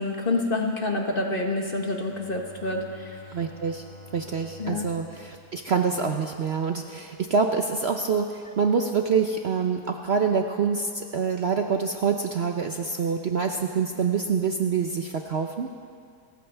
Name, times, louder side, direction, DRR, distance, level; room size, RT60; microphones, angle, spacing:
voice 1, 0.0-3.2 4.6-4.9, left 2 dB, 35° left, 2 dB, 1.4 m, -28 dB
Bowed string instrument, 1.5-6.8, left 2 dB, 80° right, 4.9 m, -49 dB
voice 2, 3.3-3.8 4.1-15.7, right 5 dB, 50° right, 4 dB, 0.9 m, -26 dB
29.5 x 14.5 x 3.4 m, 2.2 s
omnidirectional pair, 1.7 m